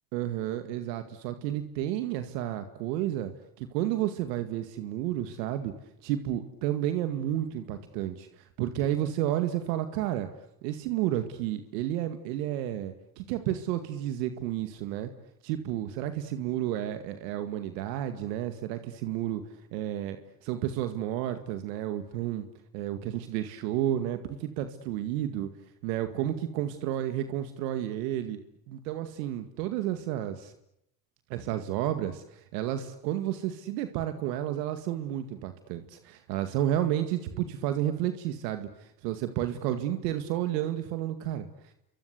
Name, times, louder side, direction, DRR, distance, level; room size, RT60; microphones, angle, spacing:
voice 1, 0.1-3.3 3.6-5.7 6.0-10.3 10.6-15.1 15.4-19.4 19.7-22.5 22.7-25.5 25.8-28.4 28.7-30.5 31.3-41.5, right 12 dB, 85° right, 8 dB, 2.2 m, -31 dB
29.0 x 24.5 x 8.2 m, 0.78 s
supercardioid pair, 85°, 48 cm